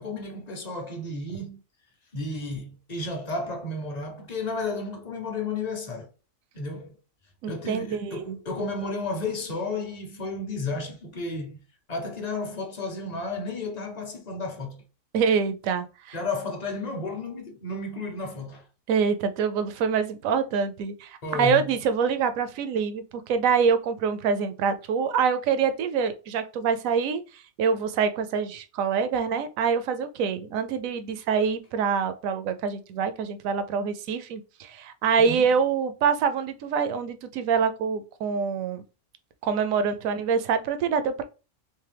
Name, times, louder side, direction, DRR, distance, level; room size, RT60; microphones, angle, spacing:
voice 1, 0.0-1.6 2.1-6.1 6.5-6.9 7.5-11.6 11.9-14.8 16.1-18.7 21.2-21.7 35.2-35.5, left 3 dB, 40° left, 0.6 m, -32 dB
voice 2, 7.4-8.4 15.1-16.2 18.9-38.8 39.4-41.2, right 6 dB, 80° right, 1.0 m, -25 dB
3.4 x 3.1 x 3.3 m
omnidirectional pair, 1.4 m